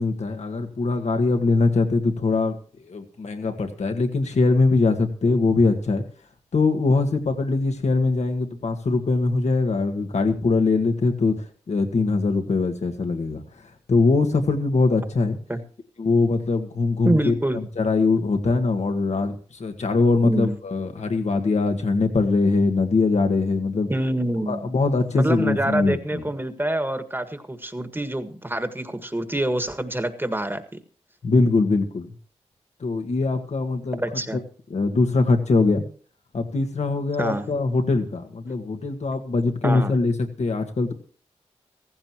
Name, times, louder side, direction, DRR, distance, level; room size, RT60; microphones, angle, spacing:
voice 1, 0.0-2.6 2.8-6.0 6.5-11.4 11.7-13.4 13.9-15.4 16.0-17.3 17.8-23.9 24.5-26.2 31.2-32.1 32.8-34.0 34.3-34.4 34.7-35.8 36.3-40.1 40.4-40.9, left 3 dB, 75° left, 6 dB, 1.9 m, -22 dB
voice 2, 17.1-17.7 20.2-20.6 23.9-24.7 25.1-30.8 34.0-34.4 37.2-37.4 39.6-39.9, right 1 dB, 20° right, 9 dB, 1.7 m, -26 dB
15.5 x 15.5 x 3.0 m, 0.42 s
cardioid pair, 45°, 12 cm